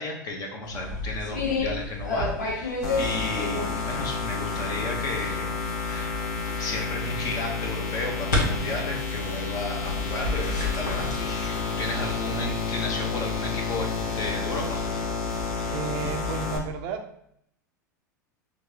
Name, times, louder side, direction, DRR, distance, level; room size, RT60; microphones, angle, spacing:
voice 1, 0.0-5.5 5.9-6.2 6.6-14.8, left 2 dB, 35° left, 0 dB, 1.2 m, -33 dB
sound 1, 0.6-16.5, left 2 dB, 70° left, 1.3 m, -33 dB
sound 2, 2.8-16.6, left 4 dB, 55° left, 1.0 m, -30 dB
voice 2, 15.4-17.1, right 5 dB, 45° right, 7 dB, 0.5 m, -33 dB
6.4 x 2.6 x 3.0 m, 0.71 s
figure-of-eight pair, 85°, 10 cm